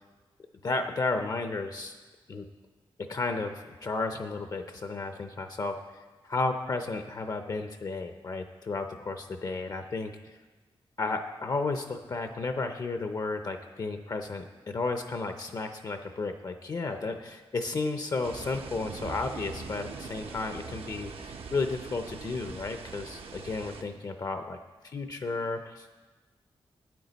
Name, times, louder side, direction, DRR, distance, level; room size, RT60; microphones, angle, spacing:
voice 1, 0.6-2.0 2.3-2.5 3.0-5.8 6.2-10.1 11.0-24.6 24.8-26.0, left 3 dB, 40° left, 7 dB, 0.5 m, -33 dB
sound 1, 18.2-23.8, right 4 dB, 80° right, 0.8 m, -42 dB
12.0 x 8.9 x 4.0 m, 1.3 s
wide cardioid pair, 140°, 10 cm